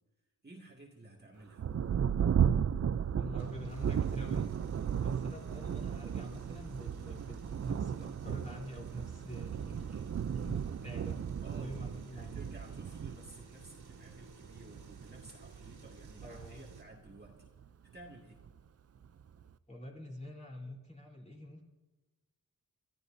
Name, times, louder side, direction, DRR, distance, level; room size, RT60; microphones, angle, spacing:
voice 1, 0.4-1.7 11.4-17.5 17.8-18.4, right 2 dB, 25° right, -1 dB, 2.1 m, -54 dB
Thunder, 1.6-17.6 18.4-18.5 19.0-19.5, right 8 dB, 40° right, 0.4 m, -35 dB
voice 2, 3.2-4.5 5.0-11.2 11.6-12.5 16.2-16.6 19.7-21.6, left 1 dB, 20° left, -1 dB, 3.6 m, -46 dB
sound 1, 3.4-16.8, right 2 dB, 80° right, 3.3 m, -59 dB
27.5 x 13.5 x 2.7 m, 1.2 s
wide cardioid pair, 95°, 37 cm